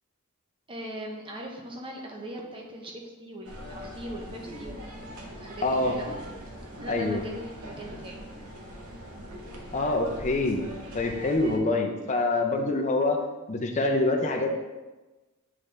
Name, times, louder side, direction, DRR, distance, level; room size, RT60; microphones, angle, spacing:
voice 1, 0.7-2.9 3.2-4.8 5.4-6.2 6.8-8.2, right 1 dB, 25° right, 0 dB, 0.8 m, -39 dB
sound 1, 3.4-11.6, equal, 80° right, 0.9 m, -42 dB
voice 2, 5.6-6.0 6.9-7.2 9.7-10.6 10.9-13.2 13.5-14.5, left 2 dB, 35° left, 3 dB, 0.6 m, -25 dB
8.1 x 3.7 x 3.3 m, 1.2 s
head